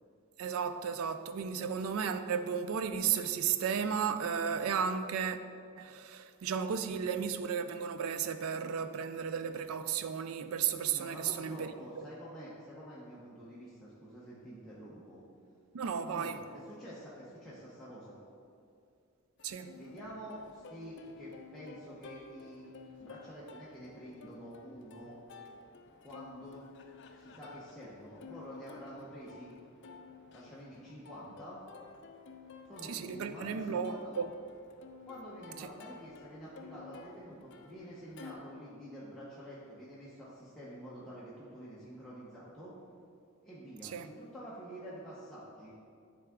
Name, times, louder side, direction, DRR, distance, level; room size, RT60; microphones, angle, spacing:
voice 1, 0.4-5.4 5.8-12.0 15.7-16.4 19.4-19.8 32.9-34.3 35.6-35.7 43.8-44.1, right 7 dB, 85° right, 0.4 m, -34 dB
voice 2, 10.9-15.2 16.0-18.2 19.7-22.7 23.0-25.2 26.0-26.7 27.1-29.5 30.3-31.6 32.6-34.1 35.1-42.7 43.4-45.7, equal, ahead, 0.8 m, -48 dB
Plucked string instrument, 19.4-38.3, left 4 dB, 60° left, 0.5 m, -53 dB
9.8 x 3.6 x 3.6 m
head